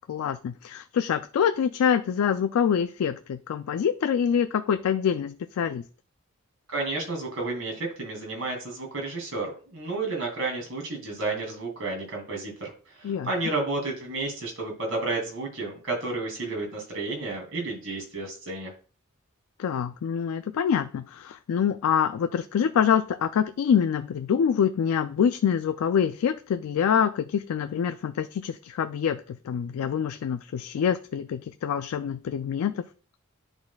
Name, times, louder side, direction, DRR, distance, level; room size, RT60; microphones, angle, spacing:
voice 1, 0.1-5.8 13.0-13.3 19.6-32.8, left 8 dB, 85° left, 0.3 m, -25 dB
voice 2, 6.7-18.7, right 3 dB, 70° right, 2.6 m, -31 dB
11.0 x 4.1 x 2.3 m
head